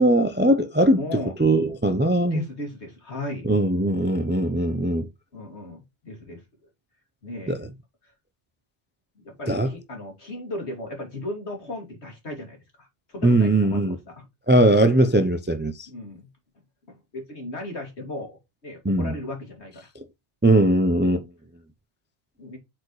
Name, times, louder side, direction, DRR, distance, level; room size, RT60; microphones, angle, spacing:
voice 1, 0.0-1.0 1.4-2.4 3.5-5.1 7.5-7.6 9.5-9.7 13.2-14.0 14.5-15.7 18.8-19.1 20.4-21.2, right 1 dB, 15° right, 0.3 m, -20 dB
voice 2, 0.9-1.3 2.3-3.5 5.3-6.4 7.2-7.6 9.2-14.3 15.9-16.3 16.9-19.9 22.4-22.6, left 2 dB, 70° left, 2.9 m, -36 dB
8.1 x 4.7 x 3.1 m
omnidirectional pair, 1.2 m